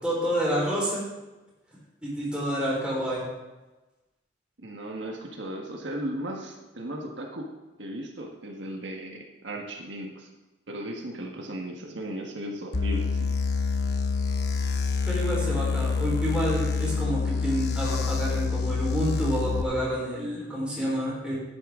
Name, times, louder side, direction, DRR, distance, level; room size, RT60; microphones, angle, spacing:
voice 1, 0.0-1.0 2.0-3.2 15.1-21.3, equal, 5° right, -6 dB, 4.2 m, -28 dB
voice 2, 4.6-7.5 7.8-10.3 10.7-13.3, right 1 dB, 80° right, 0 dB, 1.5 m, -36 dB
sound 1, 12.7-19.6, left 4 dB, 60° left, 0.9 m, -27 dB
11.5 x 9.6 x 3.7 m, 1.1 s
head